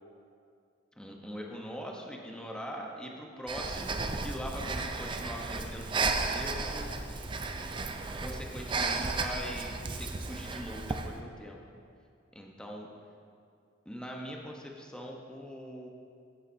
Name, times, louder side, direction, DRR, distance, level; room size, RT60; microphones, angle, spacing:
voice 1, 1.0-6.9 8.2-11.6 12.3-12.9 13.9-15.9, equal, 5° left, -1 dB, 0.8 m, -42 dB
Breathing, 3.5-11.1, right 3 dB, 25° right, 0.4 m, -34 dB
13.5 x 7.1 x 2.7 m, 2.4 s
head